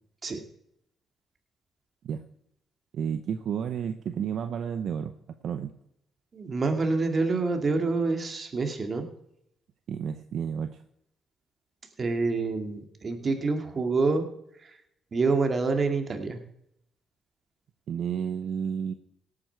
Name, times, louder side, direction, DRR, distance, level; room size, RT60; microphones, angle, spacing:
voice 1, 2.9-5.1 5.4-5.7 9.9-10.7 17.9-18.9, right 7 dB, 65° right, 8 dB, 0.8 m, -31 dB
voice 2, 6.3-9.1 12.0-14.2 14.6-14.7 15.1-16.4, right 3 dB, 40° right, 5 dB, 2.2 m, -27 dB
17.5 x 8.8 x 4.6 m, 0.76 s
cardioid pair, 90°, 0 cm